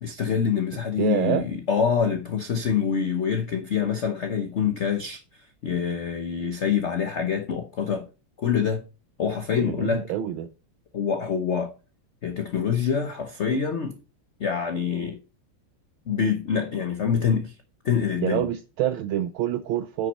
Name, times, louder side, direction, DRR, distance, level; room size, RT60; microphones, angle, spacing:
voice 1, 0.0-5.2 5.6-8.1 8.4-8.8 9.2-10.1 10.9-11.7 12.2-14.0 14.4-15.2 16.1-17.5 17.8-18.5, left 7 dB, 75° left, 0.6 m, -25 dB
voice 2, 1.0-1.5 9.6-10.5 18.2-20.1, right 11 dB, 75° right, 1.3 m, -26 dB
9.1 x 6.1 x 4.1 m
omnidirectional pair, 2.4 m